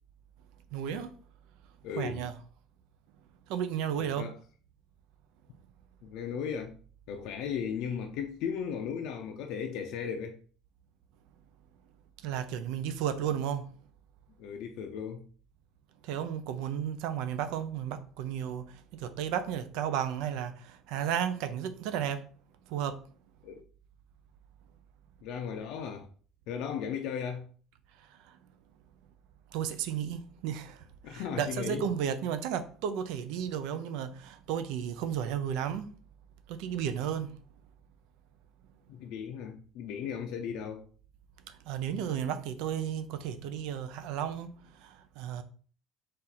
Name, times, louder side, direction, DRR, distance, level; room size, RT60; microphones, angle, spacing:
voice 1, 0.7-1.1 2.0-2.4 3.5-4.3 12.2-13.7 16.0-18.6 18.9-22.2 22.7-23.0 29.5-35.9 36.5-37.3 41.5-44.5 44.8-45.4, right 9 dB, 75° right, 0.5 m, -33 dB
voice 2, 1.8-2.2 4.0-4.3 6.0-6.7 7.1-10.4 14.4-15.2 23.4-23.6 25.2-26.1 26.5-27.5 31.0-31.8 38.9-40.9, left 7 dB, 60° left, 0.5 m, -36 dB
4.2 x 2.5 x 4.0 m
cardioid pair, 165°, 0 cm